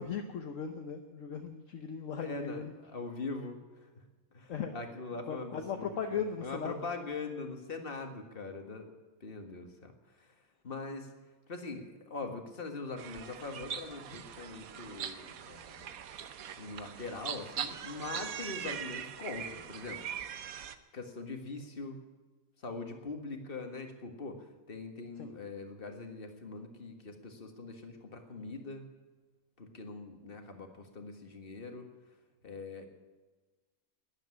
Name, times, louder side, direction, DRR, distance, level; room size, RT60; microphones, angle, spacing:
voice 1, 0.0-3.0 4.5-4.8 5.3-6.7 18.6-18.7 25.2-25.3, left 6 dB, 60° left, 5 dB, 1.3 m, -38 dB
voice 2, 2.2-3.9 4.3-8.9 9.2-9.9 10.2-10.3 10.6-11.1 11.5-15.9 16.6-20.0 20.9-22.0 22.6-28.9 29.6-31.9 32.4-32.9, left 3 dB, 40° left, 5 dB, 1.9 m, -42 dB
sound 1, 13.0-20.8, right 8 dB, 75° right, 1.3 m, -41 dB
12.5 x 10.5 x 9.7 m, 1.3 s
omnidirectional pair, 1.6 m